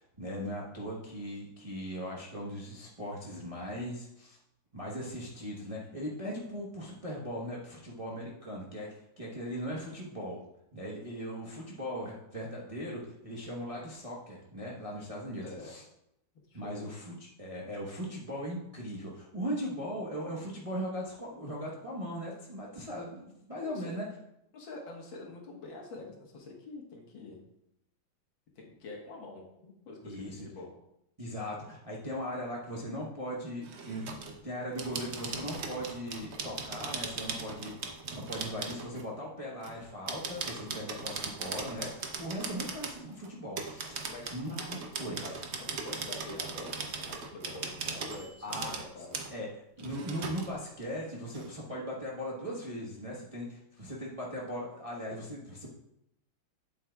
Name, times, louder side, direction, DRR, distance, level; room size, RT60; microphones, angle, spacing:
voice 1, 0.0-4.4 4.7-8.9 9.2-10.4 10.7-15.8 16.5-24.1 30.0-30.5 31.2-44.0 44.3-45.2 48.4-48.7 49.3-49.5 49.8-55.7, equal, 25° right, -4 dB, 0.8 m, -39 dB
voice 2, 15.4-15.8 16.5-16.9 23.6-24.0 24.5-27.4 28.6-30.7 40.5-41.0 44.1-44.4 45.0-49.3, left 2 dB, 75° left, -1 dB, 2.2 m, -46 dB
sound 1, 33.6-34.4 34.8-39.1 39.6-43.3 43.6-48.9 49.1-49.3 49.8-50.5 50.8-50.9 51.3-51.5, right 4 dB, 65° right, 0.6 m, -39 dB
8.7 x 7.6 x 2.3 m, 0.81 s
omnidirectional pair, 2.2 m